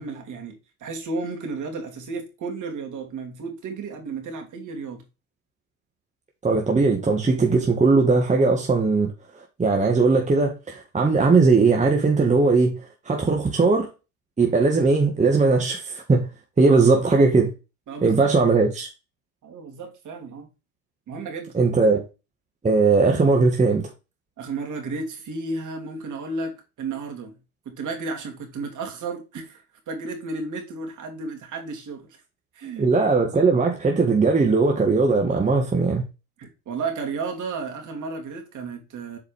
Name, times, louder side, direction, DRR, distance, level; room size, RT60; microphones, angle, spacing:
voice 1, 0.0-5.0 17.9-18.6 19.4-20.5 21.1-21.6 24.4-27.4 27.6-32.2 32.5-32.9 36.4-39.2, right 3 dB, 40° right, 3.0 m, -33 dB
voice 2, 6.4-9.1 9.6-13.9 14.4-16.3 16.6-17.5 18.0-18.9 21.5-22.0 22.6-23.8 32.8-36.0, right 4 dB, 15° right, 1.6 m, -19 dB
8.0 x 4.7 x 3.4 m
hypercardioid pair, 80°, 44 cm